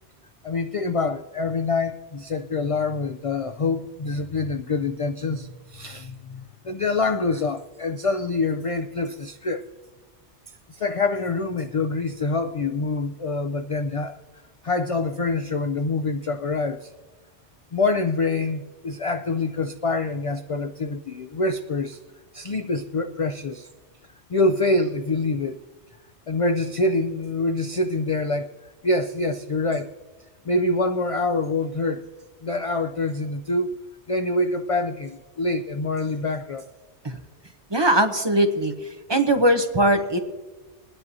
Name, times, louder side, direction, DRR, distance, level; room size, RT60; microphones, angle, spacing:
voice 1, 0.4-9.7 10.7-14.2 14.6-16.9 17.7-22.0 22.3-23.7 24.3-25.6 26.3-29.9 30.5-32.1 32.4-36.7, left 3 dB, 65° left, 8 dB, 0.3 m, -25 dB
voice 2, 37.7-38.7 39.1-40.2, right 1 dB, 25° right, 5 dB, 0.8 m, -20 dB
23.0 x 10.0 x 2.7 m, 1.2 s
omnidirectional pair, 1.2 m